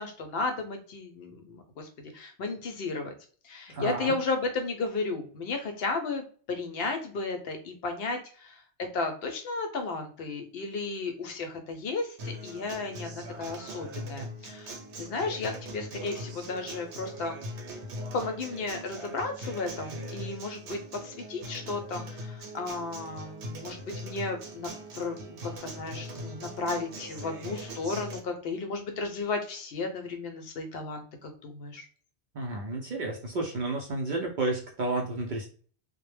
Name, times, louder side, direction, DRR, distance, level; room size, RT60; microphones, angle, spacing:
voice 1, 0.0-3.1 3.4-17.4 18.1-31.9, left 3 dB, 65° left, 5 dB, 0.7 m, -34 dB
voice 2, 3.7-4.1 32.3-35.5, right 2 dB, 60° right, 0 dB, 0.5 m, -31 dB
Acoustic guitar, 12.2-28.2, equal, 80° right, 0.9 m, -41 dB
2.1 x 2.1 x 3.1 m, 0.43 s
omnidirectional pair, 1.2 m